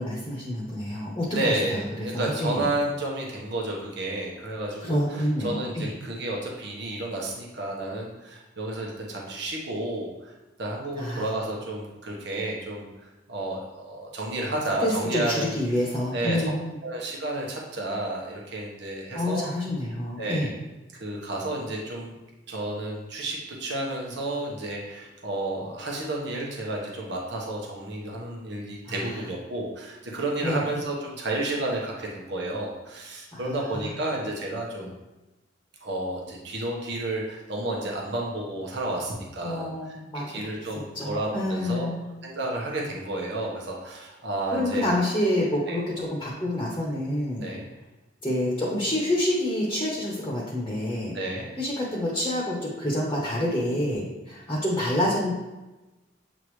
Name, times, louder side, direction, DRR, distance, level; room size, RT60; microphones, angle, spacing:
voice 1, 0.0-2.7 4.8-5.9 11.0-11.2 14.8-16.6 19.1-20.5 28.9-29.1 30.4-30.6 33.3-34.0 39.4-40.2 40.9-42.0 44.5-47.5 48.2-51.1 51.6-55.3, left 1 dB, 20° left, -4 dB, 1.0 m, -28 dB
voice 2, 1.3-10.3 10.6-12.9 13.3-15.5 16.1-16.5 16.8-19.4 20.2-20.6 21.0-22.1 22.5-35.0 35.8-41.9 42.2-44.9 45.7-45.8 47.4-47.7 51.1-51.5, right 1 dB, 70° right, -2 dB, 1.2 m, -31 dB
7.9 x 3.7 x 3.2 m, 1.1 s
head